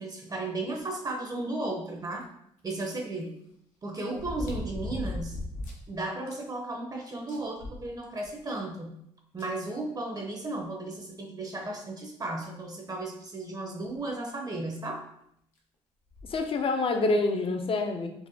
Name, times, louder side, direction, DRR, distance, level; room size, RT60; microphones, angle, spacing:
voice 1, 0.0-2.2 2.6-3.3 3.8-5.4 5.9-8.9 9.3-15.0, right 2 dB, 30° right, 1 dB, 0.6 m, -35 dB
sound 1, 2.2-2.3 4.1-5.9 6.3-6.4 6.8-6.9 7.3-8.4 9.4-9.5 10.9-11.0 11.6-11.7 12.4-12.6 14.0-14.1 14.3-14.4 16.1-16.4 17.1-17.2, left 1 dB, 80° left, 0.7 m, -37 dB
voice 2, 16.3-18.3, left 3 dB, 40° left, 6 dB, 0.5 m, -27 dB
4.0 x 2.1 x 2.6 m, 0.75 s
supercardioid pair, 65°, 14 cm